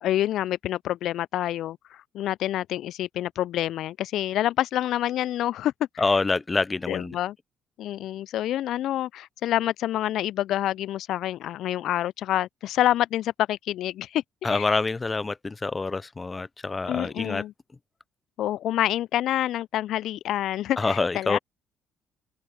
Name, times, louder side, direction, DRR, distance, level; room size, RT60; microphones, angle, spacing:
voice 1, 0.0-6.1 6.9-7.4 7.8-14.7 16.9-17.5 18.4-21.4, left 13 dB, 60° left, 0.7 m, -27 dB
voice 2, 6.0-7.2 14.4-17.4 20.8-21.4, left 3 dB, 25° left, 0.7 m, -26 dB
figure-of-eight pair, 45°, 0 cm